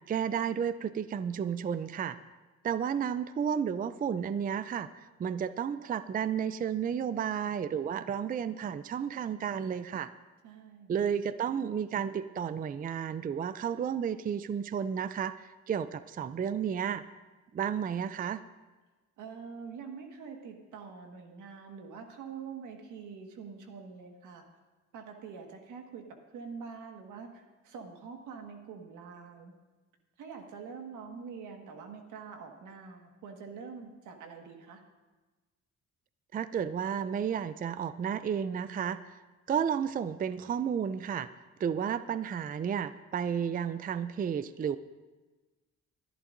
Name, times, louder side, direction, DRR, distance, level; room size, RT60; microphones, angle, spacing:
voice 1, 0.1-2.2 2.6-10.1 10.9-17.0 17.5-18.4 36.3-39.2 39.5-41.3 41.6-44.8, right 8 dB, 30° right, 14 dB, 0.4 m, -32 dB
voice 2, 10.4-10.9 19.2-24.5 24.9-26.1 26.3-29.5 30.2-34.8, right 5 dB, 85° right, 3 dB, 1.7 m, -45 dB
25.0 x 11.0 x 2.6 m, 1.2 s
cardioid pair, 90°, 30 cm